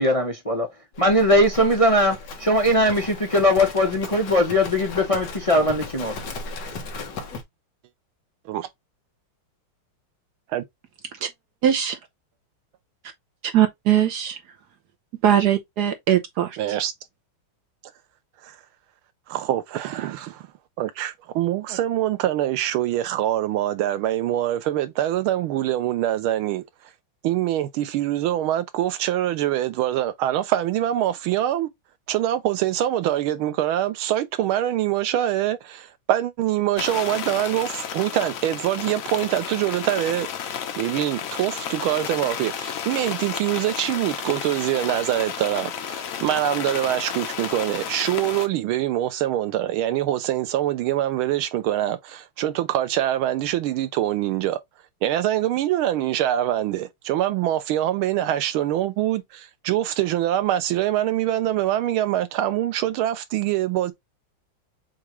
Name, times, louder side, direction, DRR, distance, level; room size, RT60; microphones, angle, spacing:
voice 1, 0.0-0.7 1.0-6.1, left 1 dB, 30° left, 0.6 m, -20 dB
Livestock farm animals working animals, 1.0-7.4, left 3 dB, 60° left, 1.6 m, -36 dB
voice 2, 11.6-11.9 13.4-14.4 15.2-16.8, right 10 dB, 65° right, 1.0 m, -20 dB
voice 3, 16.6-16.9 18.4-18.6 19.3-20.5 20.8-26.6 27.2-31.7 32.1-40.3 40.8-54.6 55.0-63.9, right 12 dB, 90° right, 1.6 m, -24 dB
sound 1, 36.8-48.5, left 8 dB, 85° left, 0.7 m, -32 dB
7.1 x 2.4 x 3.0 m
omnidirectional pair, 2.3 m